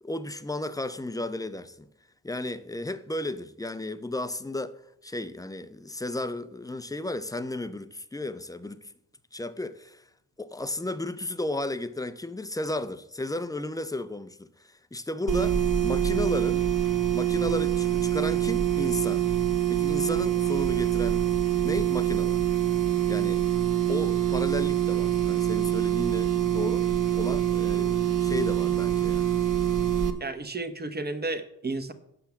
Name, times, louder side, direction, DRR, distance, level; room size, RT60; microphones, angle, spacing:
voice 1, 0.0-1.8 2.2-4.8 5.0-8.8 9.3-10.0 10.4-16.7 17.1-19.3 19.7-21.2 21.6-22.5 23.1-23.5 23.9-26.9 27.1-29.3, left 2 dB, 10° left, 0.7 m, -34 dB
sound 1, 15.3-30.1, right 11 dB, 45° right, 1.4 m, -25 dB
voice 2, 30.2-31.9, right 3 dB, 25° right, 1.1 m, -32 dB
7.6 x 5.7 x 7.1 m
supercardioid pair, 45°, 42 cm